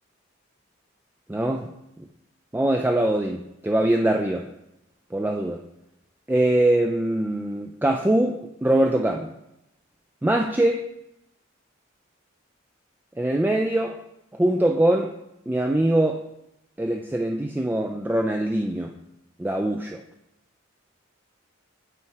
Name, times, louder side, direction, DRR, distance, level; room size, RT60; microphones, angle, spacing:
voice 1, 1.3-1.7 2.5-4.5 5.1-5.6 6.3-9.3 10.2-10.8 13.2-14.0 14.4-15.1 15.5-16.2 16.8-18.9 19.4-20.0, right 1 dB, 10° right, 3 dB, 0.3 m, -22 dB
8.4 x 4.7 x 4.6 m, 0.86 s
head